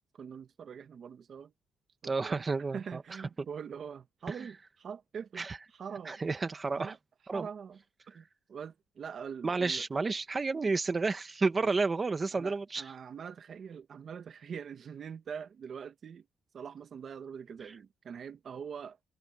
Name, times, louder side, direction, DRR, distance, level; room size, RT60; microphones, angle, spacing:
voice 1, 0.1-1.5 2.0-2.4 2.7-6.2 6.8-7.0 7.3-9.9 11.6-11.7 12.3-16.3 16.5-19.0, right 7 dB, 45° right, 1.4 m, -44 dB
voice 2, 2.0-3.0 4.3-4.4 5.4-5.6 6.0-7.0 7.3-7.5 9.4-12.9, right 4 dB, 25° right, 1.2 m, -31 dB
cardioid pair, 135°, 0 cm